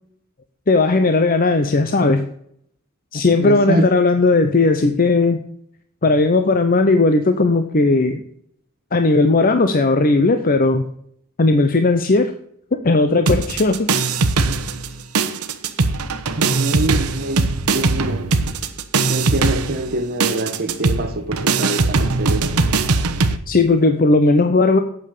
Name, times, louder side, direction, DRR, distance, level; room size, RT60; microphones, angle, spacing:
voice 1, 0.7-2.2 3.1-5.4 6.0-8.2 8.9-10.8 11.4-12.3 12.7-13.9 23.5-24.8, left 3 dB, 40° left, 0.8 m, -16 dB
voice 2, 3.4-3.9 16.4-18.3 19.1-22.6, right 1 dB, 45° right, 1.7 m, -25 dB
sound 1, 13.3-14.9 15.1-23.4, right 3 dB, 80° right, 1.0 m, -20 dB
8.6 x 8.1 x 6.7 m
head